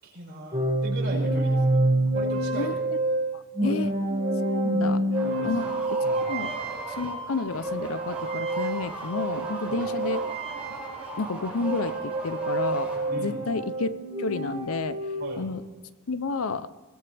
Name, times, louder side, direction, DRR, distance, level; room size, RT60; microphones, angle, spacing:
voice 1, 0.0-1.8 2.1-2.7 3.6-3.8 5.2-5.5 6.0-6.3 9.7-9.9 13.1-13.5 15.2-15.5, right 1 dB, 50° right, -3 dB, 5.6 m, -38 dB
sound 1, 0.5-11.4 11.6-15.5, right 1 dB, 30° right, 2.0 m, -28 dB
voice 2, 3.3-3.9 4.6-5.0 5.4-5.6 5.9-6.0 6.3-6.5 6.9-10.2 11.2-13.9 14.2-15.0 15.4-15.6 16.1-16.7, left 3 dB, 80° left, 14 dB, 0.7 m, -30 dB
sound 2, 5.1-13.5, right 2 dB, 5° right, 6.3 m, -39 dB
21.0 x 18.5 x 3.4 m, 1.3 s
head